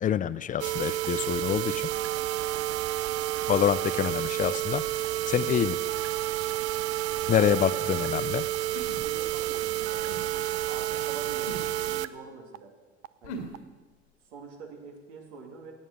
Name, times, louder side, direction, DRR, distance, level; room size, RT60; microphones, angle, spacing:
voice 1, 0.0-1.9 3.5-4.8 5.3-5.8 7.3-8.5, left 9 dB, 25° left, 17 dB, 0.5 m, -26 dB
sound 1, 0.6-12.1 12.5-12.6 13.0-13.1 13.5-13.6, right 14 dB, 45° right, 0.6 m, -30 dB
voice 2, 7.3-7.8 8.9-12.7 13.2-13.5 14.3-15.7, right 4 dB, 65° right, 1 dB, 3.0 m, -45 dB
sound 2, 7.4-7.5 8.7-9.4 10.1-10.2 11.5-11.7 13.2-13.6, equal, 70° left, 2.3 m, -40 dB
17.0 x 9.2 x 6.2 m, 1.3 s
figure-of-eight pair, 75°, 35 cm